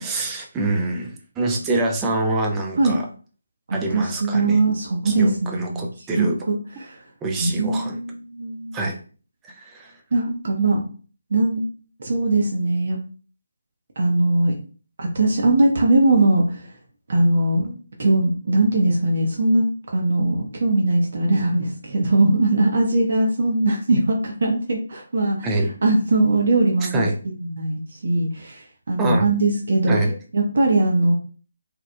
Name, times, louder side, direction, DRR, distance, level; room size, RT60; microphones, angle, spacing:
voice 1, 0.0-3.1 3.7-4.6 5.0-6.4 7.2-8.0 8.7-9.0 9.4-10.0 25.4-25.8 26.8-27.1 29.0-29.3 29.9-30.2, right 2 dB, 15° right, 1 dB, 0.4 m, -25 dB
voice 2, 3.7-5.8 6.2-7.0 7.4-8.8 10.1-10.8 11.3-11.6 12.0-13.0 14.0-14.5 15.0-16.7 17.1-17.7 18.0-19.6 19.9-25.4 25.8-27.0 27.4-30.0 30.3-31.2, right 2 dB, 50° right, 1 dB, 0.6 m, -20 dB
2.9 x 2.3 x 2.2 m, 0.39 s
figure-of-eight pair, 150°, 0 cm